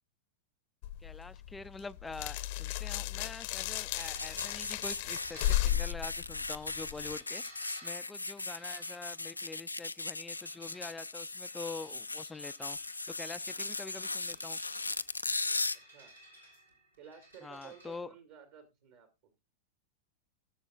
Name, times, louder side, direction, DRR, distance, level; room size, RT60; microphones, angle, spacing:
sound 1, 0.8-7.1, left 14 dB, 45° left, 0.8 m, -35 dB
voice 1, 1.0-14.6 17.4-18.1, left 3 dB, 10° left, 0.4 m, -45 dB
sound 2, 4.0-15.8, left 3 dB, 80° left, 0.4 m, -38 dB
sound 3, 4.1-18.0, right 1 dB, 85° right, 3.7 m, -57 dB
voice 2, 17.0-19.1, right 8 dB, 55° right, 2.2 m, -53 dB
19.0 x 7.1 x 2.4 m
figure-of-eight pair, 95°, 0 cm